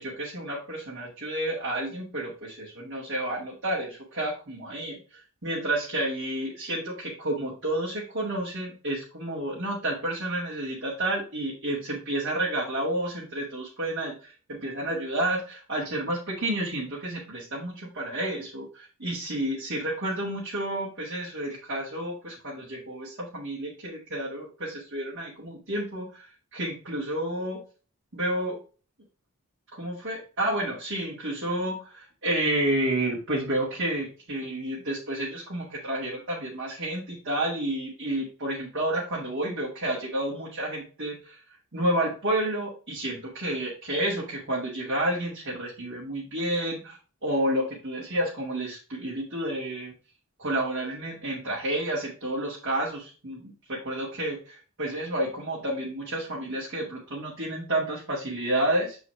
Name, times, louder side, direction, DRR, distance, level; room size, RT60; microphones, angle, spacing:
voice 1, 0.0-27.6 28.1-28.6 29.7-41.4 41.7-49.9 50.4-59.0, right 1 dB, 55° right, -5 dB, 2.1 m, -30 dB
7.3 x 4.7 x 3.2 m, 0.35 s
head